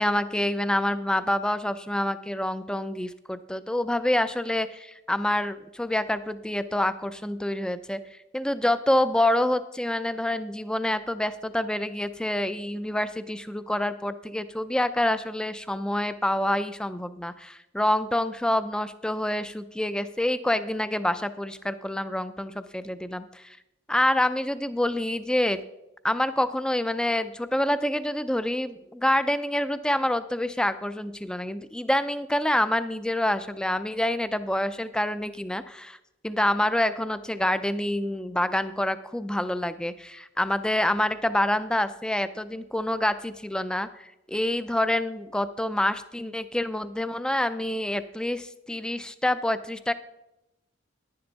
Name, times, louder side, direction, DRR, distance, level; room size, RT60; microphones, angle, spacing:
voice 1, 0.0-8.0 8.3-23.6 23.9-25.6 26.0-36.0 36.2-49.9, left 1 dB, 5° left, 13 dB, 0.3 m, -27 dB
10.5 x 10.5 x 4.0 m, 0.90 s
head